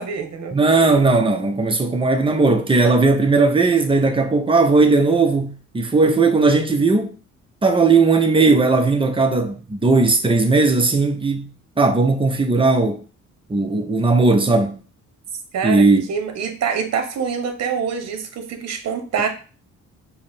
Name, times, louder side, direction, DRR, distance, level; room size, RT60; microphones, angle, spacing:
voice 1, 0.0-0.6 15.5-19.3, right 6 dB, 60° right, 0.9 m, -25 dB
voice 2, 0.5-7.1 7.6-11.5 11.8-13.0 13.5-14.8 15.6-16.0, right 3 dB, 15° right, 0.7 m, -17 dB
4.6 x 2.1 x 3.4 m
cardioid pair, 90°, 30 cm